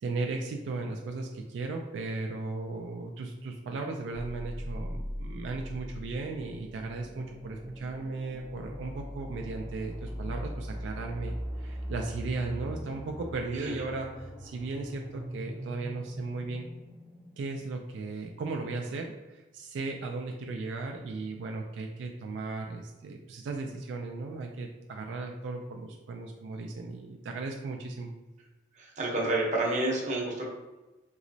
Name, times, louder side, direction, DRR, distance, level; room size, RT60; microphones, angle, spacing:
voice 1, 0.0-16.6 17.4-28.1, right 3 dB, 80° right, 2 dB, 0.3 m, -36 dB
sound 1, 4.1-17.9, equal, ahead, 0.4 m, -40 dB
voice 2, 28.8-30.5, right 2 dB, 40° right, -3 dB, 0.7 m, -29 dB
3.0 x 2.9 x 2.7 m, 1.1 s
head